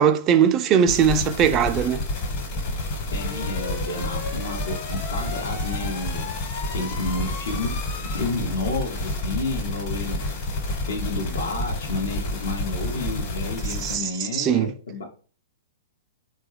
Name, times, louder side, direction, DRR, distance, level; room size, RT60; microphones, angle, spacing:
voice 1, 0.0-2.0 13.8-14.7, right 8 dB, 30° right, 0.3 m, -20 dB
sound 1, 0.9-14.0, left 1 dB, 40° left, 1.2 m, -29 dB
voice 2, 3.1-6.3 6.7-10.2 10.9-15.0, left 3 dB, 65° left, 0.8 m, -31 dB
3.6 x 2.2 x 3.2 m
figure-of-eight pair, 105°, 0 cm